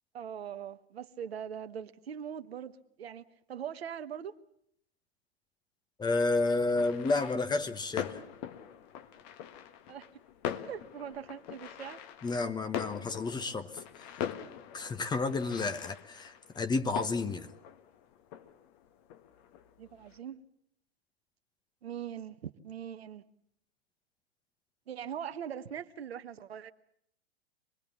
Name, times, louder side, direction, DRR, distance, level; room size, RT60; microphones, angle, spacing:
voice 1, 0.1-4.3 9.9-10.1 10.4-12.0 19.8-20.4 21.8-23.2 24.9-26.7, right 8 dB, 70° right, 10 dB, 1.3 m, -41 dB
voice 2, 6.0-8.2 12.2-13.8 14.7-17.5, left 3 dB, 15° left, 9 dB, 1.1 m, -31 dB
sound 1, 6.7-20.2, left 9 dB, 40° left, 1.6 m, -43 dB
25.5 x 21.0 x 7.2 m, 0.71 s
hypercardioid pair, 110°, 32 cm